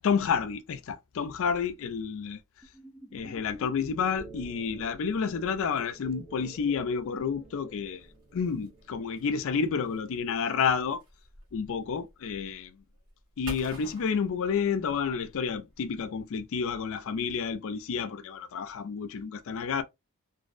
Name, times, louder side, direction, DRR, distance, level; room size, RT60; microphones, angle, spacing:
voice 1, 0.0-2.4 3.1-8.1 8.3-11.0 11.5-12.8 13.4-19.8, left 6 dB, 65° left, 0.4 m, -30 dB
sound 1, 2.6-8.0, equal, 5° right, 0.3 m, -50 dB
sound 2, 3.9-9.6, right 2 dB, 80° right, 0.8 m, -53 dB
sound 3, 8.0-16.3, right 1 dB, 60° right, 1.4 m, -50 dB
2.5 x 2.0 x 2.4 m
head